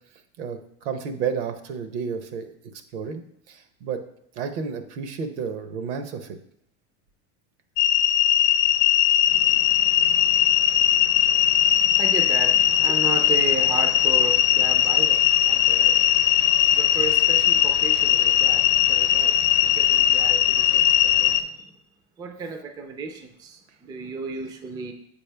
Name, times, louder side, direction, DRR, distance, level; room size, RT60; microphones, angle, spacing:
voice 1, 0.4-2.5 2.9-4.0 4.3-6.4, right 6 dB, 80° right, 0.9 m, -31 dB
sound 1, 7.8-21.4, left 11 dB, 75° left, 0.7 m, -19 dB
voice 2, 9.2-21.7 22.2-24.9, right 4 dB, 15° right, 0.3 m, -35 dB
7.3 x 4.9 x 3.3 m
supercardioid pair, 140°, 34 cm